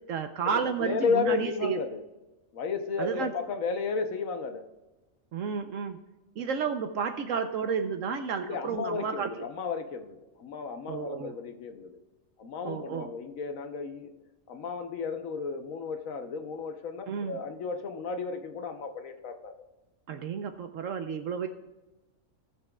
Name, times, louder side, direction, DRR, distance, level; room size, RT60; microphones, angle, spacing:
voice 1, 0.1-1.8 3.0-3.3 5.3-6.0 6.4-9.3 10.9-11.4 12.6-13.1 17.1-17.4 20.1-21.5, right 6 dB, 70° right, 7 dB, 1.0 m, -31 dB
voice 2, 0.8-2.0 2.5-4.6 8.4-12.0 12.4-14.1 14.5-19.6, left 5 dB, 75° left, 6 dB, 1.3 m, -33 dB
18.0 x 7.4 x 2.3 m, 1.1 s
omnidirectional pair, 1.4 m